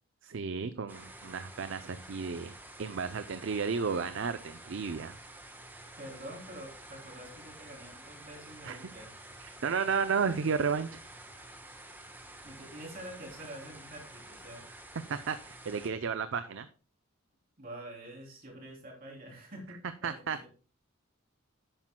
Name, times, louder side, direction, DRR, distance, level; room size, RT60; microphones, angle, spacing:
voice 1, 0.2-5.2 8.6-9.1 9.4-11.0 15.1-16.7 20.0-20.5, right 5 dB, 60° right, 11 dB, 0.5 m, -33 dB
sound 1, 0.9-15.9, right 1 dB, 10° right, 1.1 m, -50 dB
voice 2, 6.0-9.1 12.4-14.6 17.6-20.5, right 1 dB, 40° right, 0 dB, 3.1 m, -47 dB
12.0 x 8.8 x 2.2 m, 0.37 s
head